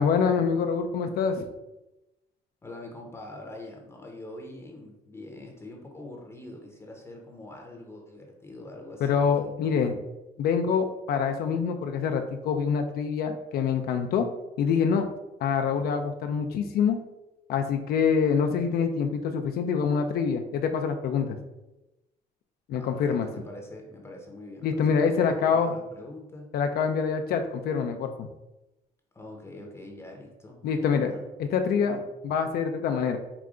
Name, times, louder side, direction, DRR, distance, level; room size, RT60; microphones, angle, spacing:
voice 1, 0.0-1.4 9.0-10.0 10.4-14.3 14.6-15.0 15.4-17.0 17.5-21.4 22.7-23.3 24.6-25.7 26.5-28.3 30.6-33.2, left 6 dB, 65° left, 5 dB, 0.4 m, -25 dB
voice 2, 2.6-9.5 22.7-26.5 29.1-31.3 31.8-32.1, left 1 dB, 15° left, 0 dB, 0.7 m, -44 dB
4.9 x 2.2 x 3.6 m, 0.96 s
cardioid pair, 110°, 17 cm